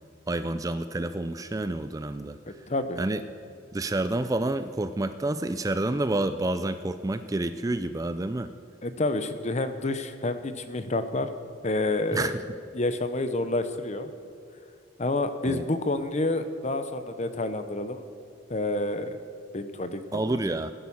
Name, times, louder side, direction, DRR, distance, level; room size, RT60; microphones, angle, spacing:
voice 1, 0.3-2.4 3.0-3.2 3.7-8.5 12.1-12.4 15.5-15.6 20.1-20.7, right 2 dB, 20° right, 11 dB, 0.4 m, -29 dB
voice 2, 2.7-3.0 8.8-11.3 11.6-12.3 12.7-14.1 15.0-18.0 18.5-19.2 19.5-20.4, left 2 dB, 35° left, 10 dB, 0.9 m, -29 dB
17.0 x 10.5 x 7.1 m, 2.2 s
head